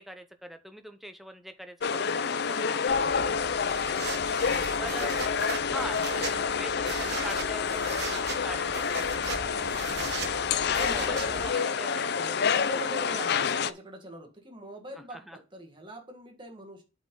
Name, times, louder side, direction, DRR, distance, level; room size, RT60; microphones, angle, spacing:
voice 1, 0.0-3.6 4.8-5.1 5.6-9.0 10.7-12.1 12.7-12.8 15.1-15.4, equal, ahead, 0.7 m, -42 dB
sound 1, 1.8-13.7, left 6 dB, 50° left, 0.4 m, -28 dB
voice 2, 2.4-2.7 4.3-4.4 4.7-4.8 9.3-9.9 10.8-11.5 12.2-16.8, right 1 dB, 25° right, 1.7 m, -44 dB
sound 2, 2.8-5.0 5.7-6.0 6.7-10.9 11.3-11.7, left 4 dB, 70° left, 1.5 m, -42 dB
sound 3, 2.9-11.5, right 4 dB, 50° right, 1.3 m, -39 dB
8.4 x 5.3 x 3.9 m
head